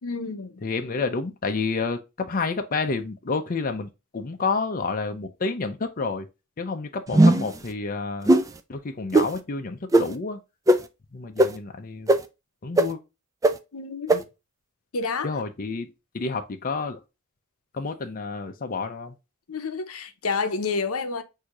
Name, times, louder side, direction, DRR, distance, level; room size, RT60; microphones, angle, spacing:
voice 1, 0.0-0.8 13.7-14.1 14.9-15.3 19.5-21.2, left 4 dB, 85° left, 0.7 m, -29 dB
voice 2, 0.6-6.3 6.6-8.3 8.7-10.4 11.1-12.1 12.6-13.0 14.1-14.2 15.2-15.9 16.1-17.0 17.7-19.1, left 4 dB, 40° left, 0.6 m, -29 dB
sound 1, 7.1-7.6 8.3-8.4 9.1-9.3 9.9-10.0 10.7-10.8 11.4-11.5 12.1-12.2 12.8-12.9 13.4-13.5 14.1-14.2, right 1 dB, 15° right, 0.3 m, -16 dB
6.2 x 2.7 x 2.4 m
head